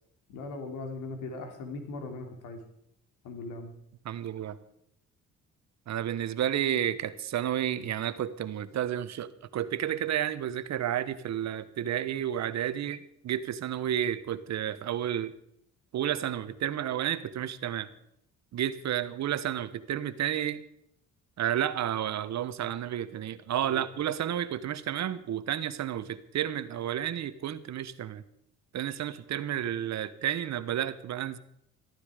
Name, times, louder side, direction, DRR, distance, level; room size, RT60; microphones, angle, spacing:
voice 1, 0.3-2.6 3.2-3.7 23.6-23.8, left 3 dB, 85° left, 5 dB, 3.0 m, -39 dB
voice 2, 4.0-4.6 5.9-15.3 15.9-17.9 18.5-20.6 21.4-28.2 28.7-31.4, right 10 dB, 65° right, 14 dB, 1.1 m, -31 dB
14.0 x 13.5 x 5.0 m, 0.73 s
cardioid pair, 90°, 30 cm